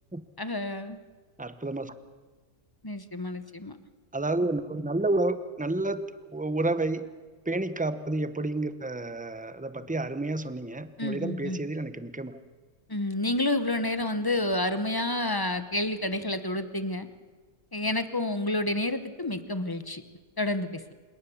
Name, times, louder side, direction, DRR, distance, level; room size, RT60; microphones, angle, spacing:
voice 1, 0.4-1.0 2.8-3.8 11.0-11.6 12.9-17.1 17.7-20.0 20.4-20.9, left 1 dB, 20° left, 11 dB, 0.8 m, -29 dB
voice 2, 1.4-1.9 4.1-6.1 6.3-7.1 7.5-12.4, right 2 dB, 10° right, 12 dB, 0.4 m, -30 dB
27.5 x 18.0 x 7.1 m, 1.4 s
omnidirectional pair, 1.8 m